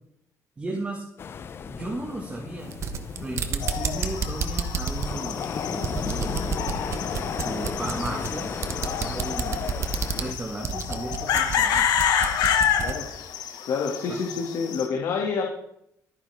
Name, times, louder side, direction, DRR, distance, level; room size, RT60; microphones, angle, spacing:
voice 1, 0.6-1.0 1.6-2.7 3.2-6.4 7.4-9.6 10.1-11.9 14.1-14.2, right 1 dB, 20° right, -1 dB, 1.9 m, -35 dB
sound 1, 1.2-10.3, left 6 dB, 35° left, 0.7 m, -35 dB
sound 2, 2.6-13.0, right 6 dB, 45° right, 1.2 m, -31 dB
sound 3, 3.6-14.9, left 8 dB, 85° left, 1.7 m, -29 dB
voice 2, 13.7-15.4, left 5 dB, 65° left, 0 dB, 2.3 m, -28 dB
24.5 x 9.8 x 3.6 m, 0.74 s
cardioid pair, 165°, 7 cm